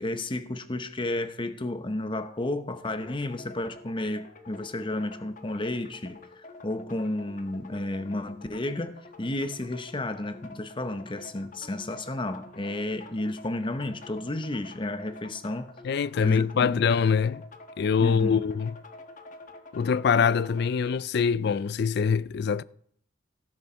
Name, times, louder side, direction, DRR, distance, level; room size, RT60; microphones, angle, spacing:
voice 1, 0.0-15.7 16.2-16.9 18.0-18.5, left 1 dB, 25° left, 0.8 m, -32 dB
sound 1, 2.8-20.7, left 2 dB, 45° left, 1.2 m, -48 dB
voice 2, 15.8-17.4 17.8-18.8 19.7-22.6, left 6 dB, 60° left, 0.4 m, -24 dB
17.0 x 6.4 x 4.4 m
head